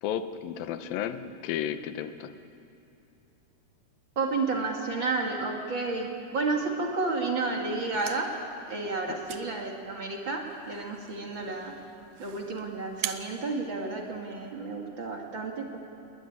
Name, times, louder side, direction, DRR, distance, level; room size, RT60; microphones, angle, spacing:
voice 1, 0.0-2.3 9.1-9.2, left 9 dB, 75° left, 10 dB, 2.6 m, -33 dB
voice 2, 4.2-8.3 8.7-11.7 12.2-15.8, right 3 dB, 40° right, 1 dB, 1.9 m, -31 dB
sound 1, 7.7-14.5, right 12 dB, 75° right, 2.5 m, -43 dB
20.5 x 20.0 x 9.8 m, 2.8 s
omnidirectional pair, 4.3 m